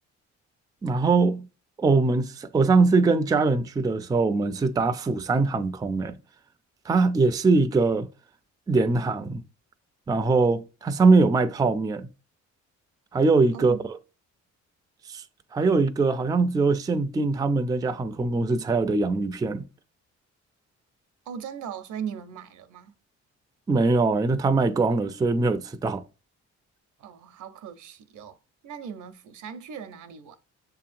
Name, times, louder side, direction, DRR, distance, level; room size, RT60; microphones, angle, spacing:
voice 1, 0.8-1.5 1.8-6.2 6.9-8.1 8.7-9.4 10.1-12.1 13.1-13.8 15.1-15.2 15.5-19.7 23.7-26.0, right 3 dB, 15° right, 0.3 m, -22 dB
voice 2, 13.5-13.9 21.3-22.9 27.0-28.4 28.6-30.3, right 7 dB, 75° right, 0.7 m, -38 dB
6.7 x 2.8 x 2.5 m
cardioid pair, 90°, 30 cm